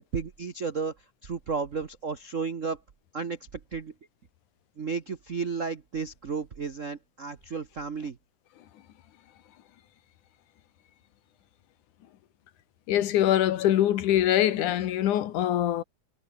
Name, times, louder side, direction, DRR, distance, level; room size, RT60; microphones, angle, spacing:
voice 1, 0.0-2.8 3.1-3.9 4.8-8.2, right 5 dB, 70° right, 0.7 m, -33 dB
voice 2, 12.9-15.8, left 12 dB, 90° left, 2.9 m, -23 dB
omnidirectional pair, 3.4 m